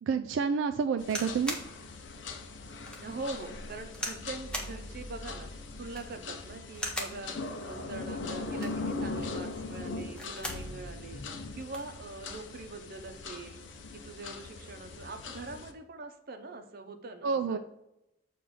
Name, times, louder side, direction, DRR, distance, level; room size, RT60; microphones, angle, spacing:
voice 1, 0.0-1.6 17.2-17.6, right 5 dB, 85° right, 8 dB, 0.3 m, -29 dB
sound 1, 1.0-15.7, left 3 dB, 80° left, 0.6 m, -40 dB
sound 2, 1.0-1.7 2.3-2.4 2.9-3.0 3.9-4.2 4.5-4.8 5.8-6.2 6.7-7.2 8.4-8.9 10.0-10.7 11.1-11.2 11.4-11.9 12.8-13.0, equal, 5° left, 0.9 m, -38 dB
voice 2, 3.0-5.5 5.8-7.4 7.6-11.2 11.5-13.6 13.9-17.6, right 3 dB, 55° right, 6 dB, 0.6 m, -43 dB
6.9 x 2.5 x 5.5 m, 0.86 s
head